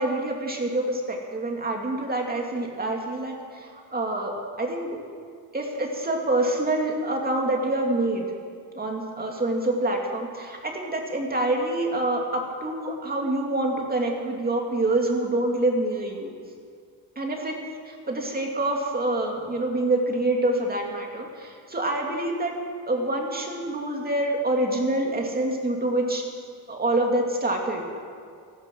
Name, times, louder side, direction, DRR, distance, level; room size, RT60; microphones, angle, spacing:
voice 1, 0.0-4.3 4.6-4.9 5.5-8.3 8.7-16.3 17.2-17.5 17.9-22.5 22.9-26.2 26.7-28.0, right 2 dB, 25° right, 1 dB, 2.4 m, -26 dB
14.5 x 12.0 x 7.7 m, 2.2 s
cardioid pair, 140°, 39 cm